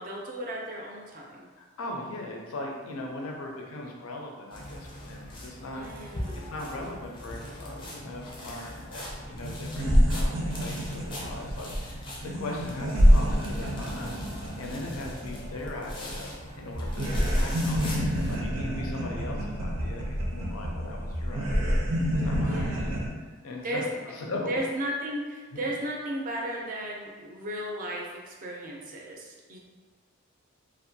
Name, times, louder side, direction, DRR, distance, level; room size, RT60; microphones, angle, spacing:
voice 1, 0.0-1.5 5.7-6.5 16.9-17.5 22.4-23.0 23.6-23.9 24.5-29.6, right 1 dB, 40° right, -2 dB, 0.4 m, -35 dB
voice 2, 1.6-5.9 6.3-21.8 22.1-23.0 23.4-23.8 24.1-24.5 25.5-25.6, left 2 dB, 85° left, 0 dB, 0.5 m, -39 dB
sound 1, 4.5-18.4, left 1 dB, 25° left, 0.4 m, -41 dB
sound 2, 9.1-9.2 9.4-16.4 16.7-23.1, equal, 90° right, 0.5 m, -27 dB
2.6 x 2.2 x 2.6 m, 1.4 s
head